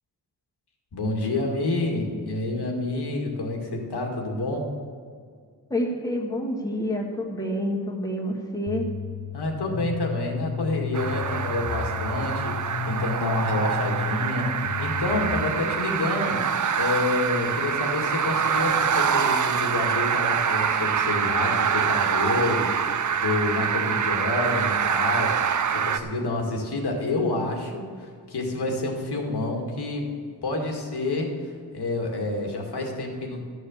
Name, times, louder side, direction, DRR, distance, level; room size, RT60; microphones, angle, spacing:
voice 1, 0.9-4.7 9.3-30.2 30.4-33.4, left 2 dB, 80° left, 1 dB, 2.2 m, -28 dB
voice 2, 5.7-8.8, equal, 10° left, -2 dB, 1.7 m, -28 dB
sound 1, 8.7-15.5, left 7 dB, 45° left, 0.5 m, -32 dB
sound 2, 10.9-26.0, right 7 dB, 50° right, 0.6 m, -25 dB
13.5 x 6.8 x 7.2 m, 2.1 s
wide cardioid pair, 135°, 39 cm